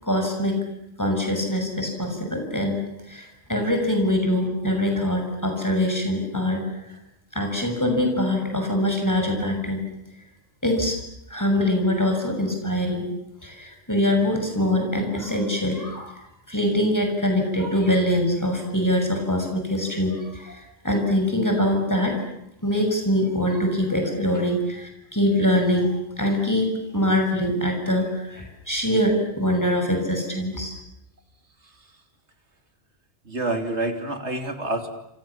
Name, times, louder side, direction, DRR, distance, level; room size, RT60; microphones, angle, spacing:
voice 1, 0.0-0.6 1.0-2.8 3.1-6.6 7.3-9.8 10.6-10.9 11.3-13.1 13.4-16.2 16.5-22.2 22.6-30.8, left 1 dB, 15° left, 3 dB, 6.8 m, -23 dB
voice 2, 33.3-34.9, right 2 dB, 75° right, 6 dB, 3.5 m, -27 dB
29.0 x 28.0 x 7.3 m, 0.81 s
omnidirectional pair, 1.2 m